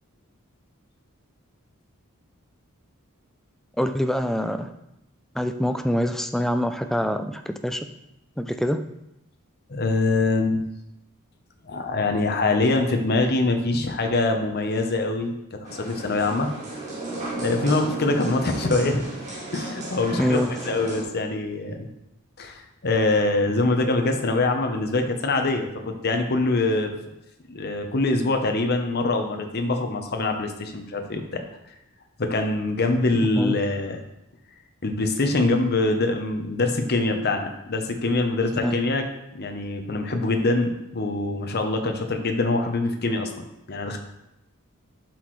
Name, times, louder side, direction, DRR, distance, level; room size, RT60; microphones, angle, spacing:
voice 1, 3.8-4.7 5.4-7.9 8.4-8.8 20.2-20.5 33.4-33.5 38.6-38.7, equal, ahead, 8 dB, 0.3 m, -25 dB
voice 2, 9.7-10.6 11.7-16.5 17.4-19.0 19.5-21.9 22.4-26.9 27.5-31.4 32.2-34.0 34.8-39.0 39.3-44.0, left 2 dB, 50° left, 5 dB, 0.8 m, -24 dB
sound 1, 15.6-21.0, right 2 dB, 35° right, 2.2 m, -34 dB
8.0 x 6.0 x 3.2 m, 0.85 s
head